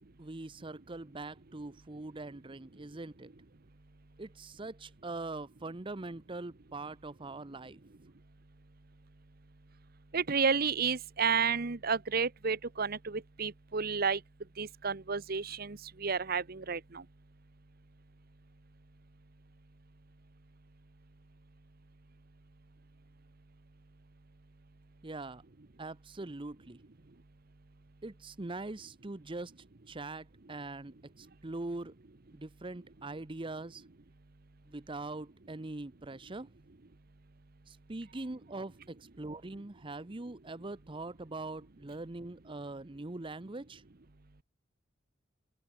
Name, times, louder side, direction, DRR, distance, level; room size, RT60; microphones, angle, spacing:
voice 1, 0.2-3.3 4.2-7.8 25.0-25.4 25.8-26.8 28.0-29.5 29.9-31.9 32.3-33.8 34.7-36.5 37.7-43.8, right 2 dB, 25° right, 0.8 m, -42 dB
voice 2, 10.1-14.2 14.6-17.0, right 5 dB, 50° right, 1.0 m, -31 dB
open air
head